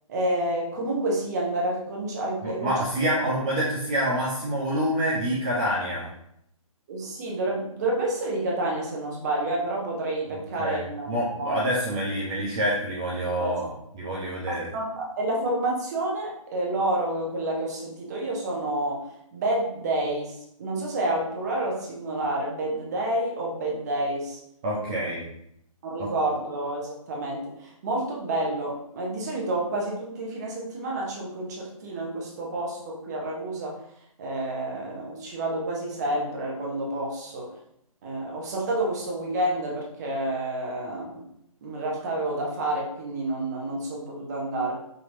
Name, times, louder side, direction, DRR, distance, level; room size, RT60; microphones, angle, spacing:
voice 1, 0.1-2.7 6.9-11.1 11.4-11.6 13.4-13.6 14.5-24.4 25.8-33.7 34.2-37.5 38.0-41.3 41.6-44.8, right 1 dB, 30° right, -2 dB, 0.9 m, -29 dB
voice 2, 2.4-6.1 10.3-13.7 13.9-14.7 24.6-25.3 26.0-26.1, right 1 dB, 10° right, -7 dB, 0.3 m, -27 dB
5.2 x 2.8 x 2.6 m, 0.74 s
figure-of-eight pair, 140°, 18 cm